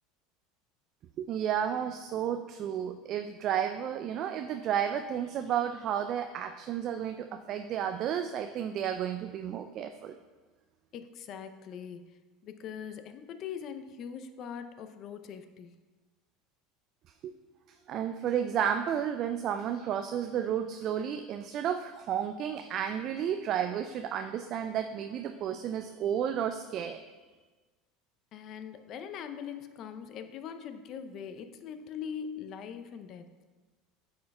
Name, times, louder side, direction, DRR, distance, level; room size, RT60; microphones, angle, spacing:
voice 1, 1.2-10.1 17.2-17.3 17.7-27.0, right 9 dB, 50° right, 7 dB, 0.3 m, -32 dB
voice 2, 10.9-15.7 28.3-33.3, left 7 dB, 50° left, 9 dB, 0.5 m, -42 dB
9.4 x 5.5 x 2.2 m, 1.3 s
hypercardioid pair, 85°, 0 cm